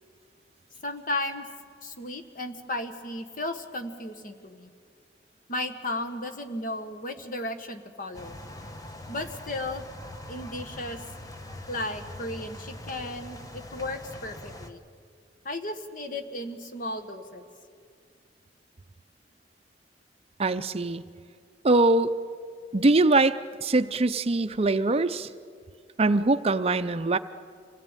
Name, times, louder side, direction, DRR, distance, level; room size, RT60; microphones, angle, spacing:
voice 1, 0.8-1.5 1.8-4.7 5.5-8.4 9.1-9.8 10.3-11.0 11.7-14.8 15.4-17.4, left 1 dB, 50° left, 7 dB, 1.5 m, -34 dB
sound 1, 8.1-14.7, left 1 dB, 20° left, 1.1 m, -42 dB
voice 2, 20.4-21.0 21.6-22.1 22.7-25.3 26.0-27.2, right 2 dB, 35° right, 11 dB, 0.6 m, -22 dB
26.0 x 17.0 x 9.0 m, 2.2 s
head